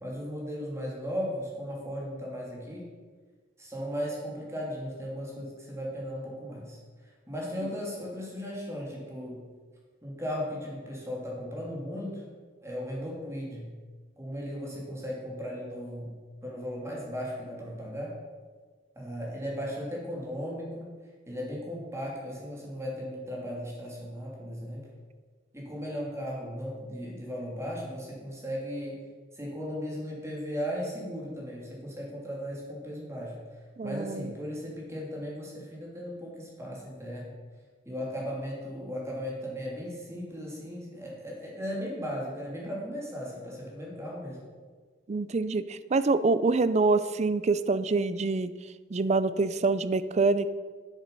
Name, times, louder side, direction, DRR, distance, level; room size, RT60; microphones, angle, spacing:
voice 1, 0.0-2.9 3.6-6.8 7.3-9.4 10.0-12.2 12.6-13.7 14.2-16.1 16.4-18.1 19.0-20.9 21.3-24.8 25.5-29.0 29.3-33.4 33.8-37.3 37.8-44.4, equal, 15° right, -3 dB, 2.9 m, -36 dB
voice 2, 33.8-34.3 45.1-48.5 48.9-50.5, right 3 dB, 40° right, 14 dB, 0.5 m, -26 dB
8.2 x 7.4 x 6.9 m, 1.5 s
head